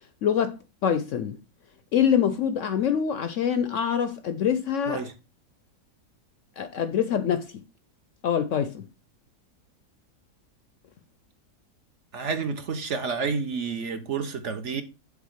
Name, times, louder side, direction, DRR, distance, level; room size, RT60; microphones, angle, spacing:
voice 1, 0.2-0.6 0.8-1.4 1.9-5.0 6.6-7.6 8.2-8.9, left 8 dB, 65° left, 0.8 m, -25 dB
voice 2, 12.1-14.8, right 5 dB, 55° right, 1.1 m, -30 dB
7.2 x 3.7 x 6.5 m
omnidirectional pair, 1.7 m